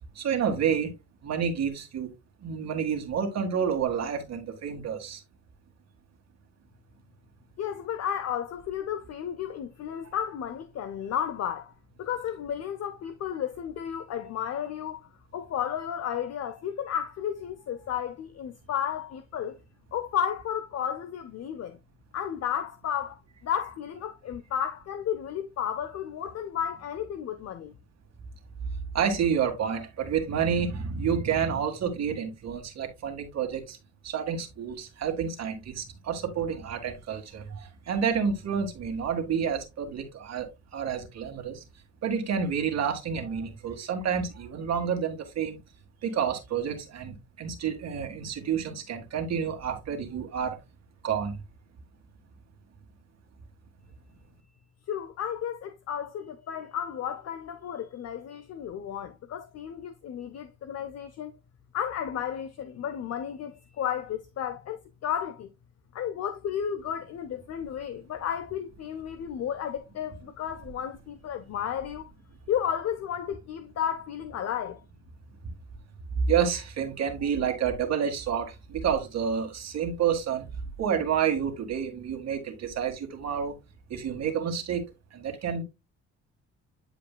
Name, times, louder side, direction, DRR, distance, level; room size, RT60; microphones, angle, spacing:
voice 1, 0.2-0.9 1.2-2.1 2.4-5.2 28.9-33.8 34.0-40.5 40.7-41.6 42.0-45.6 46.0-50.6 51.0-51.3 76.3-80.4 80.8-83.6 83.9-84.8 85.1-85.6, right 7 dB, 60° right, 1.9 m, -29 dB
voice 2, 7.6-11.7 12.0-19.6 19.9-21.8 22.1-27.7 54.9-61.4 61.7-65.5 65.9-72.1 72.5-74.8, left 9 dB, 55° left, 0.7 m, -33 dB
9.6 x 5.0 x 2.2 m
cardioid pair, 90°, 30 cm